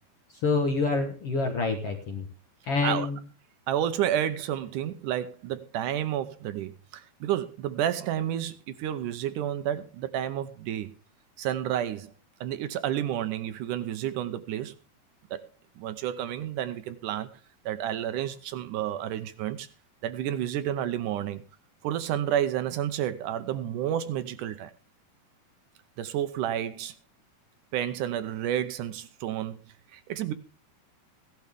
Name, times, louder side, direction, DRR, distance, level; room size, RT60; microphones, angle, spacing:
voice 1, 0.3-2.2 2.6-3.2, left 3 dB, 60° left, 3 dB, 1.7 m, -27 dB
voice 2, 3.7-10.9 11.4-12.1 12.4-14.7 15.3-15.5 15.8-17.3 17.7-19.7 20.0-21.4 21.8-24.7 26.0-27.0 27.7-30.3, right 11 dB, 75° right, 12 dB, 1.9 m, -30 dB
16.5 x 12.0 x 3.6 m, 0.33 s
omnidirectional pair, 4.3 m